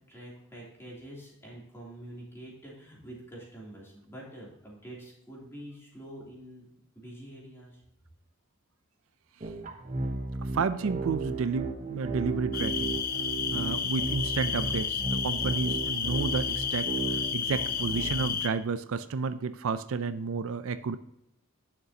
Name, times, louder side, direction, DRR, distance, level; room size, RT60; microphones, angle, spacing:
voice 1, 0.1-6.6 6.9-7.8, right 1 dB, 10° left, -5 dB, 2.9 m, -46 dB
sound 1, 9.4-18.4, right 3 dB, 35° right, 0.8 m, -34 dB
voice 2, 10.4-13.0 13.5-21.0, right 5 dB, 70° right, 12 dB, 0.4 m, -31 dB
sound 2, 12.5-18.5, left 7 dB, 40° left, 0.7 m, -31 dB
11.0 x 6.8 x 2.8 m, 0.82 s
head